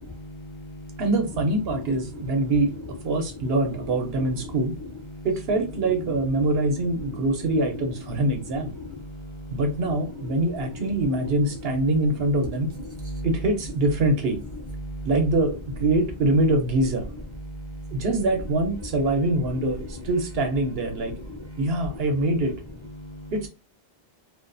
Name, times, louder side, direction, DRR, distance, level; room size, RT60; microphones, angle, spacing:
voice 1, 0.1-1.0 2.1-2.7 3.4-3.5 4.3-4.6 4.8-5.3 6.4-6.5 6.9-7.4 8.6-10.3 10.7-10.8 12.5-13.3 14.8-15.1 17.5-18.0 19.8-20.0 20.9-22.0 23.0-23.3, left 1 dB, 45° left, 0.4 m, -38 dB
voice 2, 1.0-2.7 3.0-4.7 5.2-8.7 9.5-12.7 13.2-14.4 15.0-17.1 17.9-21.1 21.6-22.6 23.3-23.5, right 2 dB, 75° right, 0.9 m, -24 dB
2.4 x 2.3 x 2.5 m
omnidirectional pair, 1.1 m